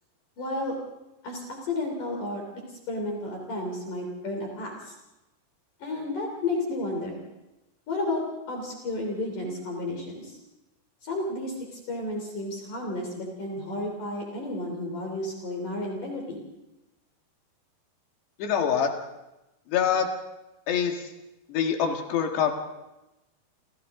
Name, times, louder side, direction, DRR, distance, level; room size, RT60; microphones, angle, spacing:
voice 1, 0.4-0.8 1.2-2.4 2.9-4.9 5.8-7.2 7.9-10.4 11.0-16.4, left 2 dB, 50° left, 1 dB, 4.7 m, -32 dB
voice 2, 18.4-18.9 19.7-20.1 20.7-21.0 21.5-22.5, left 8 dB, 80° left, 3 dB, 3.9 m, -25 dB
29.5 x 27.5 x 3.8 m, 0.98 s
omnidirectional pair, 4.9 m